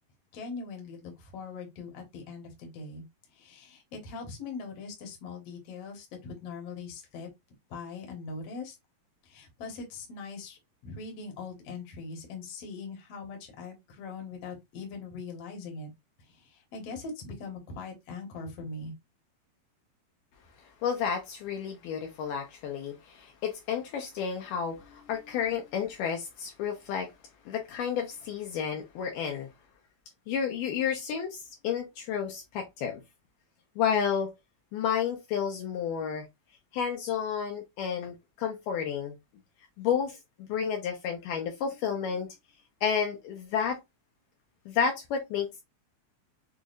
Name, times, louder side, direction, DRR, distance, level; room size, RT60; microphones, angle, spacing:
voice 1, 0.3-3.0 3.3-7.3 7.7-8.8 9.2-15.9 16.2-18.9, left 4 dB, 60° left, 1.8 m, -41 dB
voice 2, 20.8-27.1 27.5-29.5 30.3-33.0 33.8-34.3 34.7-36.3 36.7-39.1 39.8-42.3 42.8-43.8 44.7-45.6, left 7 dB, 80° left, 2.2 m, -31 dB
6.2 x 2.3 x 2.4 m
omnidirectional pair, 4.1 m